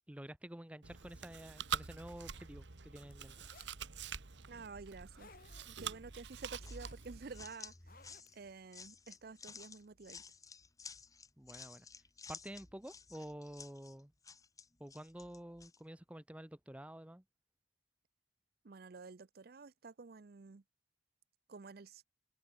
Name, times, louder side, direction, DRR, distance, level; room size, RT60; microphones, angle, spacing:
voice 1, 0.1-3.4 11.4-11.9 12.3-14.1 14.8-17.2, right 1 dB, 5° right, 0.6 m, -50 dB
Chewing mastication, 0.8-7.4, right 6 dB, 65° right, 1.3 m, -45 dB
sound 1, 3.1-3.8 4.9-5.8 6.3-7.1 7.6-8.6, left 4 dB, 45° left, 4.3 m, -62 dB
voice 2, 4.5-5.3 5.7-8.0 8.3-10.2 18.6-20.6 21.5-22.0, right 4 dB, 50° right, 0.5 m, -51 dB
sound 2, 6.6-15.8, left 5 dB, 15° left, 1.8 m, -54 dB
head